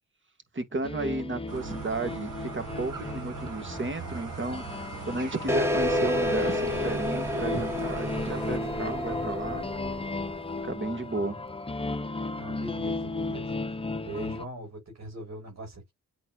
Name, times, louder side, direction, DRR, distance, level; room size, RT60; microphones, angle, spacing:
voice 1, 0.5-9.7 10.6-11.5, right 2 dB, 35° right, 2.3 m, -33 dB
sound 1, 0.8-14.4, left 3 dB, 15° left, 0.8 m, -35 dB
sound 2, 1.5-8.6, right 6 dB, 75° right, 5.3 m, -41 dB
sound 3, 5.5-10.6, left 1 dB, 10° right, 1.5 m, -30 dB
voice 2, 12.3-13.8 14.0-15.9, right 1 dB, 50° right, 5.8 m, -41 dB
8.4 x 4.5 x 2.6 m
cardioid pair, 55°, 32 cm